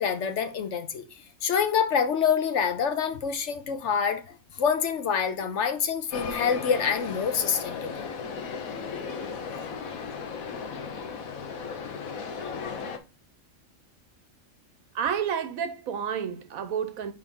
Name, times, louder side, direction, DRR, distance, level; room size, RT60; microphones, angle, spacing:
voice 1, 0.0-4.2 4.6-8.1 9.5-9.6, left 7 dB, 65° left, 1.0 m, -26 dB
sound 1, 6.1-13.0, left 5 dB, 85° left, 1.3 m, -36 dB
voice 2, 14.9-17.1, right 8 dB, 90° right, 1.2 m, -30 dB
4.8 x 3.9 x 5.3 m
omnidirectional pair, 1.4 m